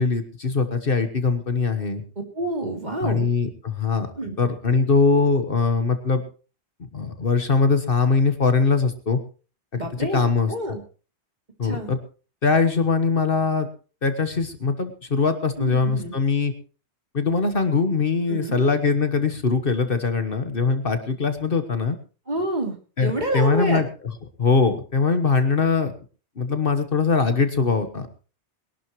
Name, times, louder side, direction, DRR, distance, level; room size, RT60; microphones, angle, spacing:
voice 1, 0.0-2.0 3.0-4.1 4.4-6.2 6.9-9.2 9.7-10.5 11.6-12.0 12.4-13.7 14.0-16.5 17.1-22.0 23.0-23.8 24.4-25.9 26.4-28.1, left 4 dB, 50° left, 8 dB, 1.5 m, -22 dB
voice 2, 2.3-3.3 4.2-4.4 9.7-10.8 11.6-11.9 15.6-16.1 18.3-18.6 22.3-23.8, right 1 dB, 40° right, 2 dB, 3.1 m, -28 dB
22.0 x 12.0 x 3.1 m, 0.36 s
omnidirectional pair, 1.2 m